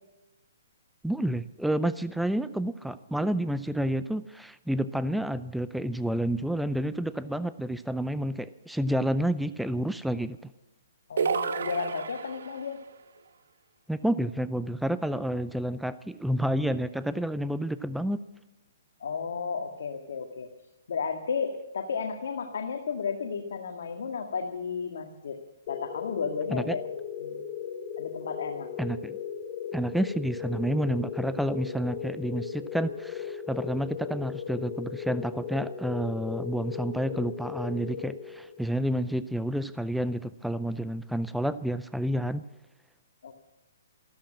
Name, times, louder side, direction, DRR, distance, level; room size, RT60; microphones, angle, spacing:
voice 1, 1.0-10.5 13.9-18.2 26.5-26.8 28.8-29.2 29.7-42.4, right 1 dB, ahead, 14 dB, 0.5 m, -29 dB
voice 2, 11.1-12.8 19.0-20.5 20.9-25.4 25.7-26.8 27.2-27.4 28.0-28.7 43.2-43.3, left 5 dB, 70° left, 3 dB, 1.8 m, -33 dB
sound 1, 11.2-12.7, right 6 dB, 75° right, 1.3 m, -30 dB
sound 2, 25.7-38.8, left 7 dB, 40° left, 1.3 m, -37 dB
14.5 x 13.0 x 7.5 m, 1.0 s
hypercardioid pair, 150°, 0 cm